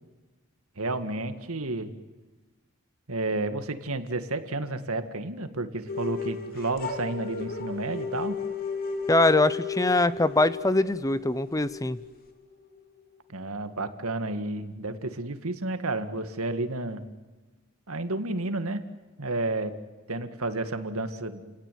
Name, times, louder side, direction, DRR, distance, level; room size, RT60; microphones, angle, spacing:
voice 1, 0.8-1.9 3.1-8.4 13.3-17.1 17.9-18.8 19.2-19.7 20.1-21.5, right 2 dB, 90° right, 9 dB, 2.0 m, -31 dB
sound 1, 5.9-12.8, left 4 dB, 45° left, 3.2 m, -34 dB
voice 2, 9.1-12.0, left 2 dB, 15° left, 15 dB, 0.7 m, -23 dB
29.5 x 18.0 x 9.4 m, 1.3 s
head